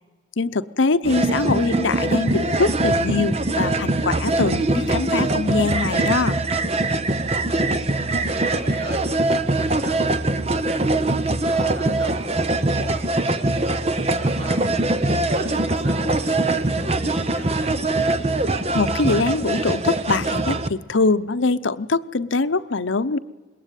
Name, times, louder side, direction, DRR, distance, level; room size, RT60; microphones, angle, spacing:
voice 1, 0.4-6.4 18.7-23.2, left 3 dB, 80° left, 13 dB, 0.8 m, -23 dB
sound 1, 1.0-20.7, right 2 dB, 30° right, 0.9 m, -22 dB
voice 2, 7.9-9.0 9.5-12.2 12.5-17.9, right 1 dB, 50° right, 3 dB, 5.2 m, -37 dB
26.0 x 21.5 x 9.1 m, 1.4 s
head